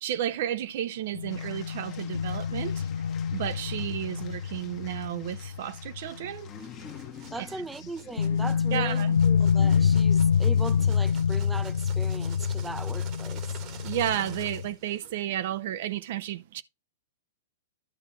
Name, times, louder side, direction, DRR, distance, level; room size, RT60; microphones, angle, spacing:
voice 1, 0.0-2.9 3.3-6.5 7.4-7.5 8.7-9.2 13.8-16.6, right 11 dB, 60° right, 0.6 m, -32 dB
sound 1, 1.1-6.6 6.9-7.0 8.2-14.7, left 7 dB, 90° left, 0.4 m, -26 dB
sound 2, 1.3-11.6 12.1-12.5, left 9 dB, 30° left, 1.1 m, -50 dB
sound 3, 6.5-15.2, right 8 dB, 40° right, 1.3 m, -49 dB
voice 2, 7.3-13.6, right 2 dB, 10° right, 0.6 m, -39 dB
11.5 x 5.7 x 3.0 m
hypercardioid pair, 120°, 0 cm